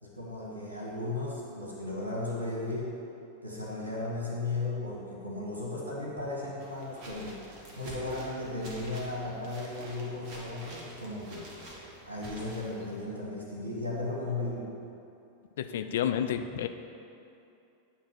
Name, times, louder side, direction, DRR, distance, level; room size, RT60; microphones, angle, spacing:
voice 1, 0.0-3.0 3.4-7.4 7.8-11.5 12.0-14.7, left 2 dB, 75° right, -5 dB, 1.5 m, -35 dB
sound 1, 6.6-13.1, right 1 dB, 40° right, 1.3 m, -47 dB
voice 2, 15.6-16.7, left 9 dB, 60° left, 8 dB, 0.3 m, -30 dB
8.6 x 2.9 x 6.1 m, 2.7 s
figure-of-eight pair, 90°, 0 cm